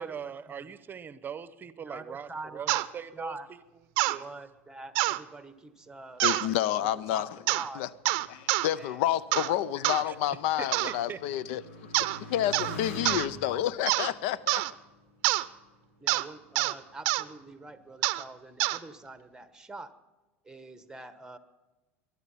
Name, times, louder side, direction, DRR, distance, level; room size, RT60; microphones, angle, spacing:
voice 1, 0.0-3.6 4.0-4.2 10.0-10.2 10.6-11.2, right 7 dB, 30° right, 15 dB, 0.9 m, -41 dB
voice 2, 1.9-2.8 3.1-3.5 4.2-7.8 8.7-9.0 10.1-10.2 13.5-13.6 16.0-19.9 20.4-21.4, right 2 dB, 10° right, 12 dB, 1.2 m, -44 dB
sound 1, 2.7-2.9 4.0-4.2 5.0-5.2 6.2-6.5 7.5-7.7 8.1-8.7 9.3-9.5 9.8-10.0 10.7-11.0 11.9-12.2 12.5-12.8 13.1-13.3 13.9-14.1 14.5-14.7 15.2-15.5 16.1-16.3 16.6-16.7 17.1-17.2 18.0-18.2 18.6-18.8, right 20 dB, 65° right, 0.6 m, -26 dB
voice 3, 6.2-7.3 7.8-7.9 8.3-11.6 12.3-14.6, left 12 dB, 70° left, 20 dB, 0.5 m, -29 dB
Motorcycle, 7.1-15.9 16.6-17.2, left 1 dB, 85° left, 2.7 m, -47 dB
21.0 x 11.5 x 5.6 m, 1.1 s
hypercardioid pair, 85°, 7 cm